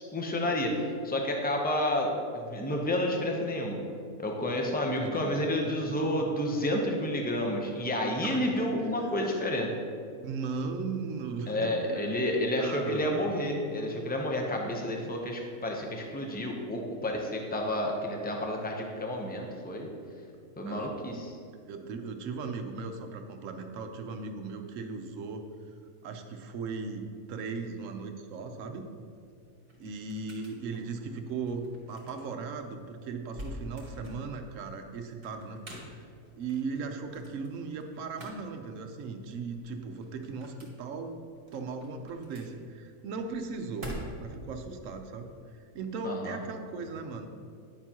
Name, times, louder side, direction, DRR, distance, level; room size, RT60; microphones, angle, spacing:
voice 1, 0.1-3.8 4.2-9.7 11.5-19.9 20.6-21.4 46.0-46.4, left 1 dB, 10° left, 1 dB, 0.4 m, -30 dB
voice 2, 5.0-5.4 5.6-6.2 8.2-8.6 10.1-13.3 20.7-20.9 21.7-25.4 26.0-28.9 29.8-35.6 35.9-36.1 36.4-41.2 41.5-43.9 44.2-47.3, right 4 dB, 65° right, 6 dB, 1.0 m, -38 dB
sound 1, 29.2-44.5, equal, 40° right, 1.7 m, -48 dB
9.9 x 6.8 x 2.9 m, 2.4 s
omnidirectional pair, 1.5 m